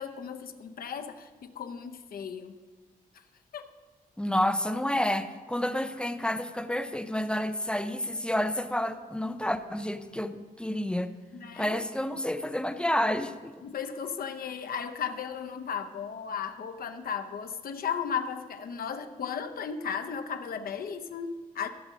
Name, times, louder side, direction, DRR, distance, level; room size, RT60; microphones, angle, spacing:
voice 1, 0.0-2.5 3.1-3.2 3.5-3.7 11.3-11.8 13.6-21.7, left 7 dB, 75° left, 7 dB, 0.7 m, -35 dB
voice 2, 4.2-11.1 11.6-13.5, left 1 dB, 5° left, 9 dB, 0.5 m, -29 dB
15.5 x 6.6 x 6.2 m, 1.4 s
wide cardioid pair, 145°, 15 cm